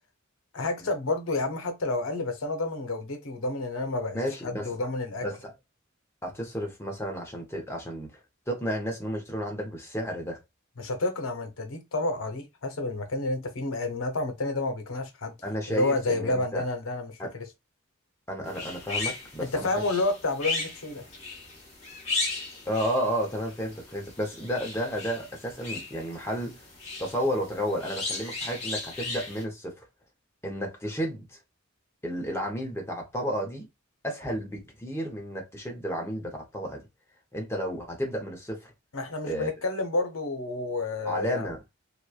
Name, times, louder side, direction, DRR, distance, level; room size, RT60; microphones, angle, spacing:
voice 1, 0.5-4.2 4.4-5.3 10.8-15.3 15.7-17.5 19.4-21.1 38.9-41.5, left 2 dB, 75° left, 0.7 m, -30 dB
voice 2, 4.1-4.7 5.2-5.5 6.2-8.1 8.5-10.4 15.4-16.6 17.2-17.3 18.3-19.8 22.7-26.6 27.0-29.8 30.4-31.4 32.0-33.7 34.0-36.9 37.3-38.7 39.3-39.5 41.1-41.6, equal, 15° left, 0.8 m, -32 dB
sound 1, 18.4-29.4, left 3 dB, 30° left, 1.1 m, -36 dB
3.0 x 2.2 x 2.3 m
head